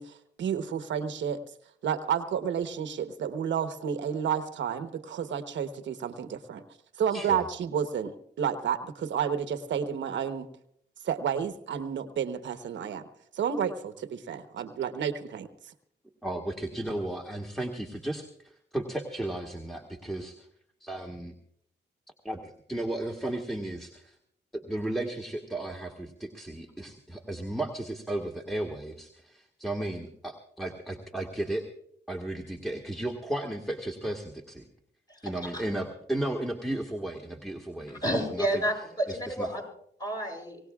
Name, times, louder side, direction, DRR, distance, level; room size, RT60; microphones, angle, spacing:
voice 1, 0.0-1.4 1.8-6.6 7.0-10.5 11.0-13.0 13.3-15.5, right 8 dB, 85° right, 9 dB, 1.1 m, -31 dB
voice 2, 7.1-7.4 16.2-20.5 20.8-21.3 22.2-24.2 24.5-31.7 32.1-34.7 35.2-38.6 39.1-39.5, right 1 dB, ahead, 1 dB, 1.9 m, -34 dB
voice 3, 35.2-35.6 37.9-39.6 40.0-40.6, equal, 20° left, 1 dB, 7.6 m, -30 dB
25.0 x 18.0 x 2.4 m, 0.67 s
cardioid pair, 70°, 19 cm